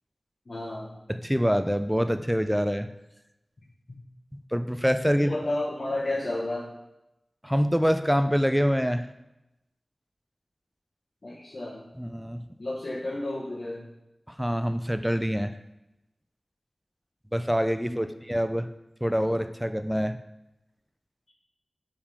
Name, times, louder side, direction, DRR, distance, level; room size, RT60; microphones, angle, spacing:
voice 1, 0.5-0.9 5.1-6.7 11.2-11.8 12.6-13.8 17.8-18.1, left 1 dB, 60° left, -7 dB, 1.2 m, -32 dB
voice 2, 1.1-2.9 4.5-5.4 7.4-9.1 12.0-12.4 14.4-15.5 17.3-18.7 19.0-20.2, equal, ahead, 9 dB, 0.4 m, -25 dB
5.1 x 5.1 x 5.4 m, 0.90 s
wide cardioid pair, 75°, 0 cm